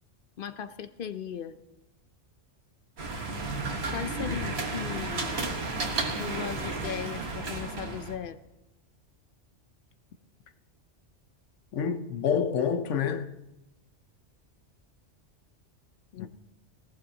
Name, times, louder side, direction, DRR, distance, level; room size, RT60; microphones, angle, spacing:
voice 1, 0.4-1.6 3.9-5.4 6.2-8.4 16.1-16.3, left 8 dB, 55° left, 0.7 m, -37 dB
sound 1, 3.0-8.2, right 3 dB, 60° right, 1.6 m, -33 dB
voice 2, 4.2-4.5 11.7-13.3 16.2-16.3, left 7 dB, 85° left, 1.1 m, -28 dB
19.0 x 17.0 x 2.8 m
omnidirectional pair, 1.2 m